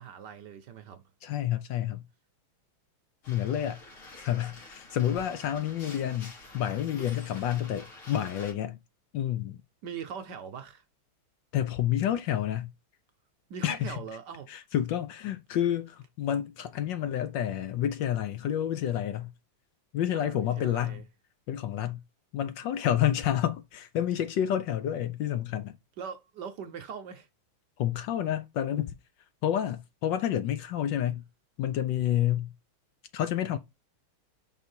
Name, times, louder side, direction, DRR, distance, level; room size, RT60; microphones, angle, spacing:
voice 1, 0.0-1.0 9.8-10.8 13.5-14.5 20.1-21.0 26.0-27.3, right 7 dB, 65° right, 1.2 m, -41 dB
voice 2, 1.2-2.0 3.3-3.8 4.2-8.8 9.1-9.6 11.5-12.7 13.6-14.0 14.5-19.3 19.9-21.0 21.5-22.0 22.3-25.8 27.8-28.9 29.4-31.2 31.6-32.5 33.1-33.6, left 11 dB, 70° left, 1.2 m, -29 dB
sound 1, 3.2-8.5, left 2 dB, 90° left, 3.3 m, -48 dB
5.6 x 4.0 x 4.3 m
omnidirectional pair, 2.3 m